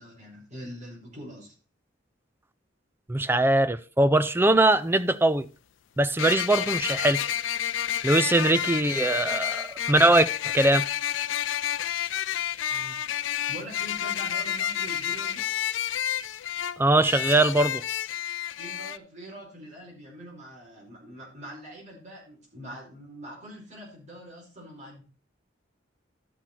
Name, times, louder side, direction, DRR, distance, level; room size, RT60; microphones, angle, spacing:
voice 1, 0.0-1.5 12.7-15.5 18.6-25.0, equal, 40° right, 4.6 m, -44 dB
voice 2, 3.1-5.5 6.0-7.3 8.0-10.8 16.8-17.8, right 2 dB, 10° right, 0.4 m, -21 dB
sound 1, 4.6-4.7 6.2-19.0, left 10 dB, 80° left, 0.4 m, -30 dB
12.5 x 6.0 x 4.4 m
head